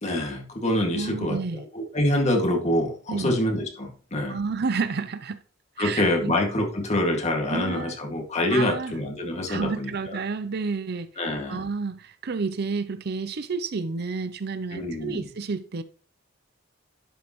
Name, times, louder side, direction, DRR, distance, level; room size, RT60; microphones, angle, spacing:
voice 1, 0.0-4.4 5.8-10.2 11.2-11.6 14.7-15.3, left 1 dB, 35° left, 2.1 m, -26 dB
voice 2, 0.9-1.6 3.1-3.3 4.3-5.4 5.8-6.4 7.5-8.0 8.5-8.9 9.5-11.1 11.5-15.8, right 4 dB, 55° right, 0.6 m, -30 dB
11.0 x 5.2 x 3.0 m
head